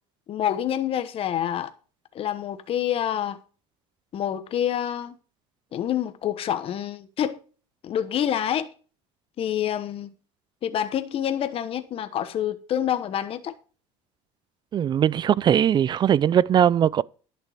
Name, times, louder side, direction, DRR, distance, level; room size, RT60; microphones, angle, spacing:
voice 1, 0.3-1.7 2.1-3.4 4.1-5.1 5.7-7.4 7.8-8.7 9.4-10.1 10.6-13.5, left 10 dB, 40° left, 1.1 m, -27 dB
voice 2, 14.7-17.0, right 9 dB, 30° right, 0.4 m, -20 dB
11.0 x 6.7 x 5.0 m
supercardioid pair, 105°, 14 cm